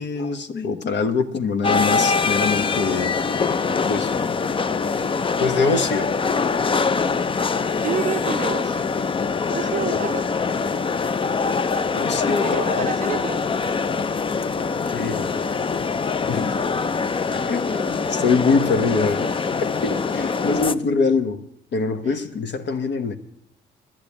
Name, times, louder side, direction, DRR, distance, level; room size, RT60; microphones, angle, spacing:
voice 1, 0.0-3.2 3.9-4.1 5.4-6.1 9.9-10.1 11.9-13.2 14.6-14.7 14.9-15.3 16.3-16.6 17.5-19.3 19.8-21.5 21.7-23.2, left 4 dB, 65° left, 1.2 m, -24 dB
sound 1, 1.6-20.7, left 5 dB, 25° left, 0.5 m, -23 dB
voice 2, 7.8-8.9 9.5-10.3 12.4-13.4, right 8 dB, 40° right, 0.5 m, -29 dB
10.5 x 10.5 x 8.5 m
cardioid pair, 90°, 20 cm